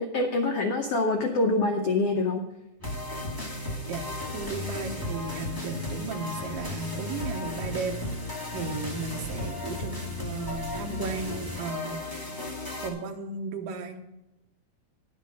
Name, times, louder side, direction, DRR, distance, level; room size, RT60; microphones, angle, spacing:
voice 1, 0.0-2.4, left 2 dB, 75° left, 3 dB, 1.4 m, -25 dB
sound 1, 2.8-12.9, left 2 dB, 10° left, 1.4 m, -35 dB
voice 2, 4.3-8.0 8.5-12.3 12.8-14.0, right 4 dB, 75° right, 3 dB, 2.8 m, -35 dB
11.5 x 7.5 x 6.0 m, 0.96 s
omnidirectional pair, 4.1 m